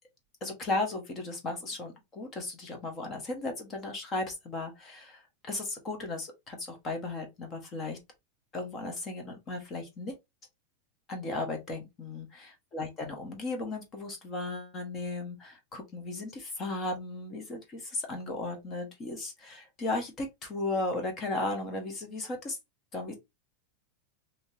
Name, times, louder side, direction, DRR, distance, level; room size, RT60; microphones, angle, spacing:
voice 1, 0.4-8.0 8.5-10.2 11.1-22.6 22.9-23.2, left 2 dB, 20° left, 0.9 m, -35 dB
3.5 x 2.8 x 2.7 m
supercardioid pair, 175°, 0 cm